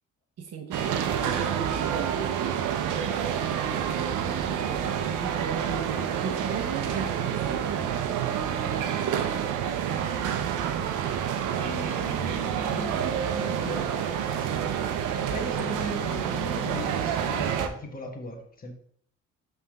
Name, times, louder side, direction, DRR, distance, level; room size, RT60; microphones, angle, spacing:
voice 1, 0.4-9.8, right 5 dB, 55° right, 4 dB, 0.9 m, -39 dB
sound 1, 0.7-17.7, right 8 dB, 85° right, 0.7 m, -28 dB
sound 2, 3.5-6.9, left 2 dB, 55° left, 1.1 m, -50 dB
voice 2, 11.6-13.0 13.3-13.9 14.2-14.7 15.3-18.7, left 2 dB, 30° left, 3 dB, 1.2 m, -38 dB
5.5 x 3.5 x 5.3 m, 0.62 s
cardioid pair, 90°, 30 cm